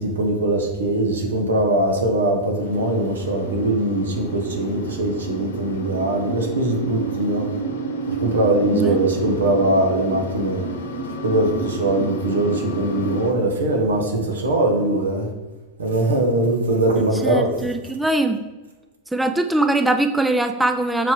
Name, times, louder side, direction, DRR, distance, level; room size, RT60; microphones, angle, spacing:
voice 1, 0.0-7.5 8.1-10.6 11.2-15.3 15.8-17.7, right 1 dB, 70° right, 2 dB, 1.5 m, -21 dB
sound 1, 2.6-13.3, right 3 dB, 60° left, 1.1 m, -30 dB
voice 2, 17.2-18.4 19.1-21.1, right 2 dB, 5° right, 7 dB, 0.5 m, -21 dB
7.6 x 4.4 x 4.8 m, 1.1 s
figure-of-eight pair, 90°, 0 cm